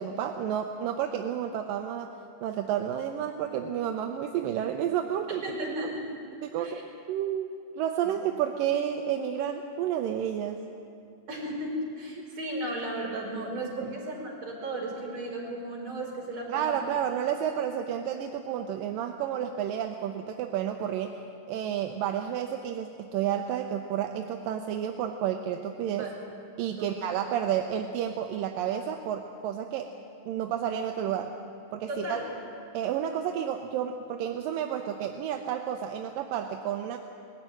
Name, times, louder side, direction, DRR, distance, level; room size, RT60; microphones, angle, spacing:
voice 1, 0.0-2.1 2.4-5.4 6.4-6.8 7.1-10.6 13.8-13.9 16.5-21.1 21.5-26.1 26.6-29.9 30.3-31.3 31.7-32.2 32.7-37.0, right 9 dB, 80° right, 4 dB, 2.3 m, -31 dB
voice 2, 5.4-6.0 6.6-6.8 8.0-8.1 11.3-16.8 26.0-26.1 26.8-27.2 31.9-32.3, right 1 dB, 45° right, -3 dB, 6.2 m, -35 dB
20.0 x 15.5 x 9.3 m, 2.5 s
omnidirectional pair, 4.2 m